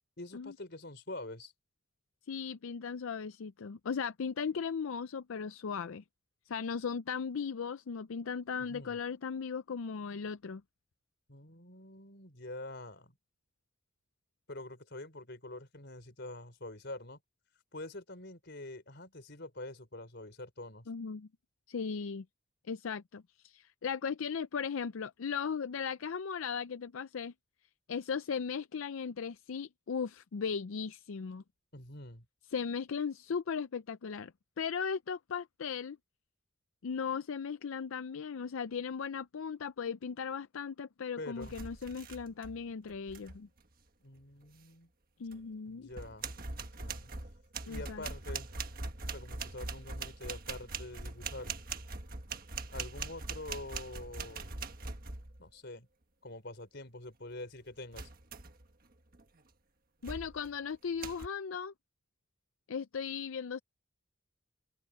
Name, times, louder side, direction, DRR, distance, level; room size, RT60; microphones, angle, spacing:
voice 1, 0.2-1.5 8.7-9.0 11.3-13.1 14.5-17.2 17.7-20.9 31.7-32.2 41.2-41.5 44.0-44.9 45.7-47.1 47.7-48.5 49.1-51.6 52.7-54.5 55.4-55.9 56.2-58.1, left 2 dB, 55° left, 4.7 m, -46 dB
voice 2, 2.3-6.0 6.5-10.6 20.9-21.3 21.7-22.2 22.7-27.3 27.9-31.4 32.5-36.0 36.8-43.5 45.2-45.9 47.7-48.0 60.0-61.7 62.7-63.6, left 6 dB, 80° left, 0.5 m, -37 dB
sound 1, 41.4-42.6 42.9-43.4 45.3-45.4 45.9-55.5 57.9-58.7 59.1-59.4 60.0-60.5 61.0-61.3, right 4 dB, 45° right, 1.5 m, -42 dB
head